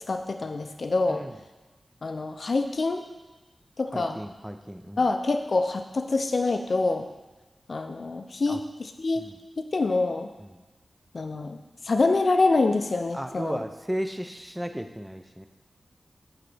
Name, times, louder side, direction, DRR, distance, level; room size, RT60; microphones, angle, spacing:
voice 1, 0.1-1.2 2.0-3.0 3.8-4.2 5.0-7.1 7.7-9.3 9.6-10.3 11.1-11.6 11.8-13.6, left 3 dB, 55° left, 6 dB, 0.4 m, -26 dB
voice 2, 3.9-5.0 8.5-8.6 9.2-9.3 10.4-10.6 13.1-15.5, equal, 5° right, 7 dB, 0.4 m, -34 dB
8.0 x 3.9 x 3.3 m, 1.1 s
wide cardioid pair, 95°, 0 cm